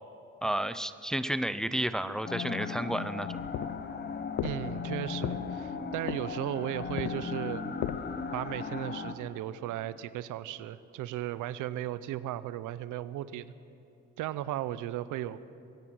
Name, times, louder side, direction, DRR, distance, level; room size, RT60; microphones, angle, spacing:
voice 1, 0.4-3.3, right 1 dB, ahead, 12 dB, 0.5 m, -31 dB
sound 1, 2.2-9.1, left 5 dB, 35° left, 1.1 m, -37 dB
sound 2, 3.3-8.4, left 10 dB, 70° left, 0.7 m, -38 dB
voice 2, 4.4-7.7 8.3-13.5 14.2-15.5, right 13 dB, 90° right, 16 dB, 0.6 m, -36 dB
23.0 x 10.0 x 6.1 m, 2.8 s
cardioid pair, 90°, 30 cm